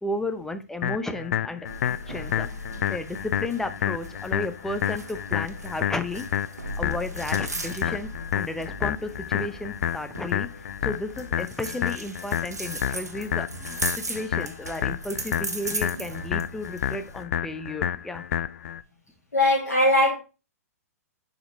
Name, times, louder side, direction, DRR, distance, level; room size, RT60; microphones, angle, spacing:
voice 1, 0.0-2.5 2.9-6.3 6.8-10.5 10.8-18.2, left 2 dB, 5° left, 0.7 m, -33 dB
sound 1, 0.8-18.8, left 10 dB, 60° left, 0.4 m, -30 dB
sound 2, 1.6-17.2, right 2 dB, 85° right, 1.1 m, -38 dB
voice 2, 19.3-20.2, left 1 dB, 85° left, 2.0 m, -20 dB
7.1 x 5.2 x 3.2 m
figure-of-eight pair, 115°, 9 cm